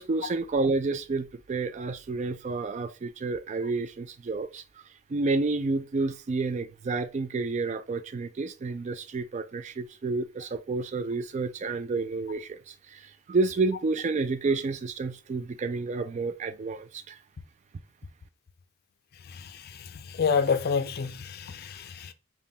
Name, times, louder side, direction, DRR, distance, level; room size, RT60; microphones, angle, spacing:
voice 1, 0.0-4.6 5.1-17.2, right 3 dB, 35° right, 0.3 m, -30 dB
voice 2, 19.3-22.1, left 6 dB, 45° left, 0.4 m, -29 dB
5.3 x 2.2 x 2.7 m
head